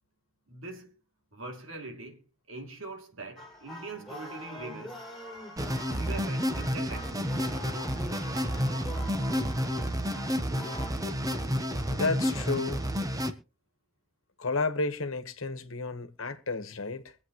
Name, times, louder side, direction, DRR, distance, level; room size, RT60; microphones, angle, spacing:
voice 1, 0.5-1.0 1.3-5.0 5.9-7.4 8.5-8.9, right 3 dB, 70° right, 3.0 m, -42 dB
sound 1, 3.4-10.9, left 1 dB, ahead, 6.0 m, -44 dB
sound 2, 5.6-13.3, equal, 15° right, 1.1 m, -30 dB
voice 2, 11.9-12.8 14.4-17.2, left 3 dB, 75° left, 1.4 m, -32 dB
24.0 x 8.2 x 3.2 m
head